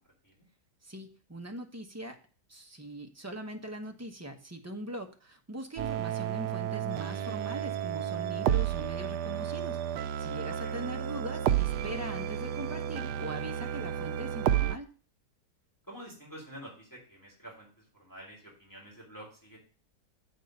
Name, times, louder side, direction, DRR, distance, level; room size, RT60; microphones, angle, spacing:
voice 1, 0.8-2.2 2.5-14.9, right 1 dB, 10° right, 4 dB, 0.8 m, -41 dB
sound 1, 5.8-14.8, right 10 dB, 75° right, 1.1 m, -31 dB
voice 2, 15.9-19.6, equal, 10° left, -4 dB, 3.9 m, -48 dB
8.0 x 4.6 x 6.6 m, 0.40 s
omnidirectional pair, 1.9 m